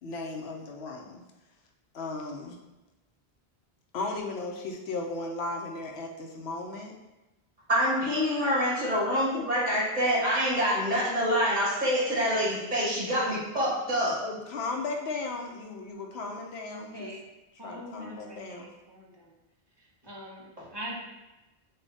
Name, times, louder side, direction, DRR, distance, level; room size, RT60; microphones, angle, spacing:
voice 1, 0.0-1.2 1.9-2.6 3.9-7.0 14.2-17.1 17.6-18.7, left 3 dB, 80° left, 2 dB, 0.9 m, -36 dB
voice 2, 7.7-14.2, equal, 45° right, -8 dB, 1.8 m, -26 dB
voice 3, 16.6-17.2 17.6-19.3 19.8-21.1, equal, 30° right, -3 dB, 0.6 m, -43 dB
6.5 x 2.3 x 2.7 m, 1.0 s
omnidirectional pair, 1.1 m